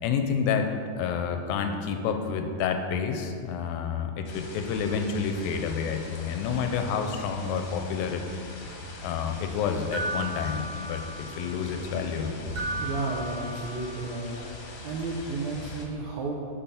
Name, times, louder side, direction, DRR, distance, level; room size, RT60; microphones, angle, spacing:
voice 1, 0.0-0.7 1.0-8.2 9.0-12.4, left 6 dB, 85° left, 6 dB, 2.3 m, -29 dB
sound 1, 4.2-15.9, left 2 dB, 65° left, 1.7 m, -41 dB
sound 2, 9.9-11.4 12.6-14.0, right 2 dB, 55° right, 2.0 m, -35 dB
voice 2, 12.8-14.3 14.8-16.5, right 3 dB, 80° right, -3 dB, 1.6 m, -32 dB
6.9 x 5.4 x 5.6 m, 2.3 s
omnidirectional pair, 4.2 m